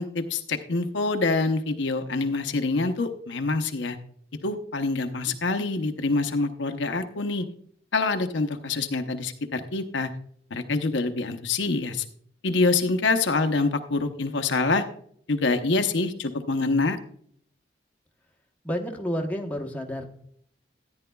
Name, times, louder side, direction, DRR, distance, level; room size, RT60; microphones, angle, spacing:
voice 1, 0.0-4.0 4.4-7.5 7.9-10.1 10.5-12.0 12.4-14.8 15.3-17.0, left 3 dB, 80° left, 8 dB, 0.8 m, -26 dB
voice 2, 18.6-20.1, equal, 10° left, 2 dB, 0.9 m, -30 dB
14.5 x 9.7 x 2.3 m, 0.64 s
head